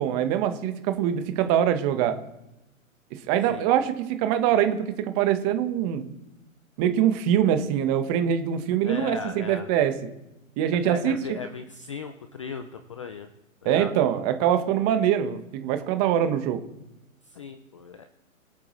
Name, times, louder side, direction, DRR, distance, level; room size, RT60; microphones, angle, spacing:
voice 1, 0.0-2.2 3.3-6.0 6.8-9.9 10.6-11.2 13.6-16.6, right 10 dB, 30° right, 8 dB, 1.3 m, -23 dB
voice 2, 8.8-9.7 10.8-13.3 13.6-13.9 17.3-18.1, left 5 dB, 25° left, 8 dB, 0.4 m, -37 dB
22.0 x 8.7 x 3.2 m, 0.92 s
hypercardioid pair, 140°, 42 cm